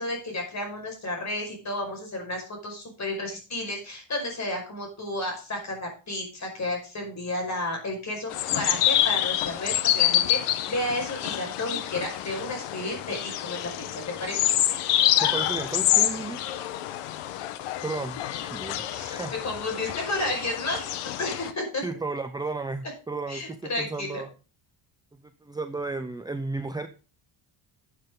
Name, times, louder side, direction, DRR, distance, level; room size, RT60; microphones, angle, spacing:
voice 1, 0.0-14.5 18.8-19.1 19.4-21.8 23.3-24.2, left 1 dB, 35° left, 2 dB, 5.3 m, -32 dB
sound 1, 8.3-21.5, left 12 dB, 85° left, 1.1 m, -27 dB
voice 2, 15.2-16.4 17.8-19.3 21.8-24.3 25.4-26.9, right 3 dB, 10° right, 8 dB, 0.6 m, -33 dB
12.5 x 7.7 x 3.8 m, 0.35 s
cardioid pair, 125°, 50 cm